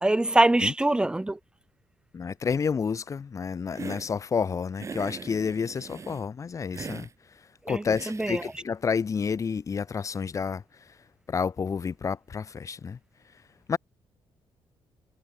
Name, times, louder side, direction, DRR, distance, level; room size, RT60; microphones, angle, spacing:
voice 1, 0.0-1.4 7.6-8.5, right 2 dB, 10° right, 1.4 m, -24 dB
voice 2, 2.1-7.1 7.7-10.6 11.3-13.0 13.7-13.8, left 6 dB, 30° left, 1.7 m, -29 dB
Hiss, 3.7-4.1 4.8-6.2 6.7-7.1 7.9-8.6, right 5 dB, 30° right, 7.6 m, -40 dB
wide cardioid pair, 165°, 10 cm